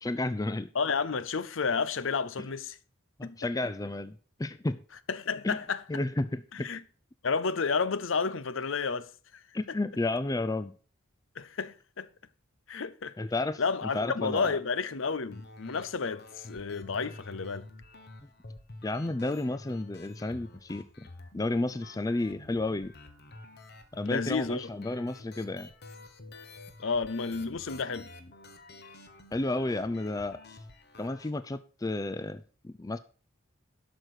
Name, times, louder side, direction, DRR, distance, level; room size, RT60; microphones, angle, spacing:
voice 1, 0.0-0.7 3.2-4.8 5.4-5.6 5.9-6.7 9.5-10.7 13.2-13.6 13.9-14.6 18.8-21.1 21.3-22.9 23.9-25.7 29.3-30.6 31.0-33.0, left 2 dB, 15° left, 0.4 m, -32 dB
voice 2, 0.7-2.8 3.2-3.4 5.1-5.8 6.5-6.8 7.2-9.1 11.4-12.1 12.7-13.1 13.6-17.6 24.1-24.7 26.8-28.1, left 5 dB, 65° left, 0.7 m, -31 dB
sound 1, 15.3-31.3, left 2 dB, 50° left, 1.4 m, -49 dB
12.0 x 6.3 x 4.9 m
head